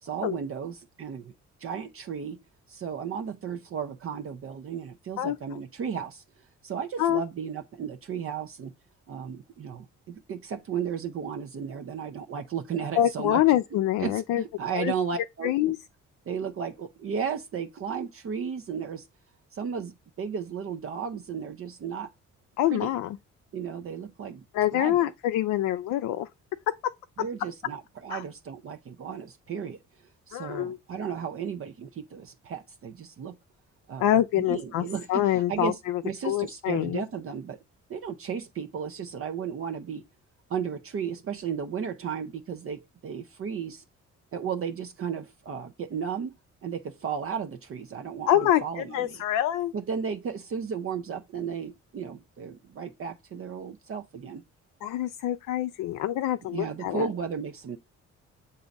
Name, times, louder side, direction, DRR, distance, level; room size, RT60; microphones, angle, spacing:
voice 1, 0.0-1.3 1.6-2.4 2.7-6.2 6.6-8.7 9.1-13.4 14.0-15.7 16.3-19.1 19.5-22.1 22.7-22.9 23.5-24.4 24.7-25.1 27.2-29.8 30.3-33.4 33.9-37.6 37.9-40.0 40.5-43.8 44.3-46.3 46.6-49.2 49.7-54.4 56.5-57.8, right 7 dB, 45° right, 0.6 m, -34 dB
voice 2, 13.0-14.4 14.8-14.9 15.4-15.8 22.6-23.2 24.5-26.3 28.1-28.2 30.3-30.8 34.0-37.0 48.3-49.7 54.8-57.1, left 12 dB, 85° left, 0.5 m, -26 dB
7.0 x 2.7 x 5.1 m
cardioid pair, 90°, 30 cm